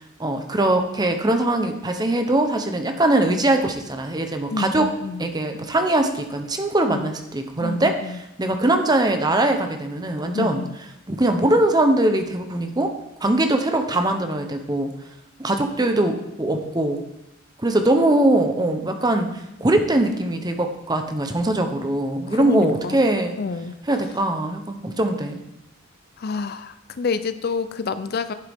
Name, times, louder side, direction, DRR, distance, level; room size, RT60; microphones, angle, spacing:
voice 1, 0.2-4.9 5.2-10.6 11.1-12.9 13.2-14.9 15.4-17.0 17.6-23.3 23.9-25.4, right 1 dB, 20° right, 6 dB, 0.8 m, -21 dB
voice 2, 4.5-5.3 6.9-7.1 7.6-8.2 10.3-10.8 22.3-23.0 23.4-23.7 26.2-28.3, left 4 dB, 50° left, 12 dB, 0.4 m, -28 dB
10.5 x 7.8 x 3.6 m, 0.86 s
head